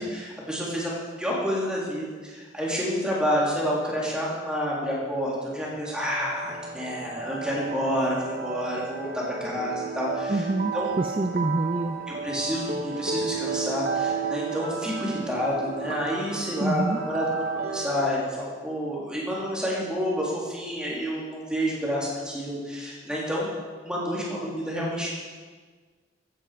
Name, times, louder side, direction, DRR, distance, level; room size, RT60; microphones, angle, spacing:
voice 1, 0.0-10.4 10.7-10.9 12.1-23.4 23.8-25.2, equal, 5° right, -5 dB, 3.4 m, -29 dB
sound 1, 5.8-18.2, right 5 dB, 50° right, 1.4 m, -33 dB
voice 2, 10.3-12.0 16.6-17.0, right 2 dB, 25° right, 7 dB, 0.4 m, -26 dB
15.5 x 10.5 x 5.1 m, 1.5 s
head